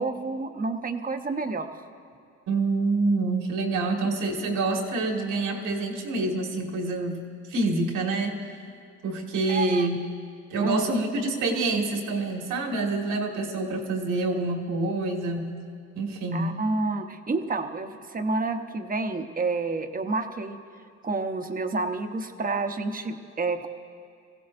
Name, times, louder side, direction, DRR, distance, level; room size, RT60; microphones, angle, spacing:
voice 1, 0.0-1.8 4.0-4.1 9.5-9.9 10.6-10.9 16.3-20.6 21.0-23.7, right 3 dB, 30° right, 6 dB, 0.9 m, -29 dB
voice 2, 2.5-8.4 9.0-10.0 10.5-15.6 15.9-16.6, right 3 dB, 80° right, 2 dB, 1.9 m, -27 dB
22.5 x 16.0 x 2.6 m, 2.4 s
cardioid pair, 90°, 30 cm